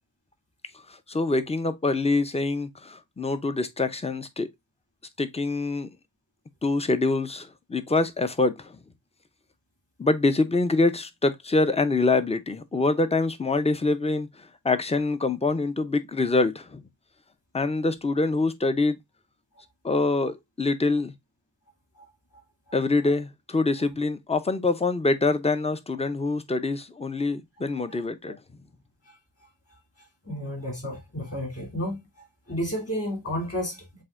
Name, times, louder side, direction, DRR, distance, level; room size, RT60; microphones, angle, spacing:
voice 1, 1.1-4.5 5.2-5.9 6.6-8.8 10.0-16.8 17.5-19.0 19.8-21.1 22.7-28.4, left 3 dB, 15° left, 0.6 m, -25 dB
voice 2, 30.2-32.0 32.5-34.0, equal, 30° left, 2.5 m, -31 dB
7.5 x 2.7 x 2.4 m
wide cardioid pair, 100°, 43 cm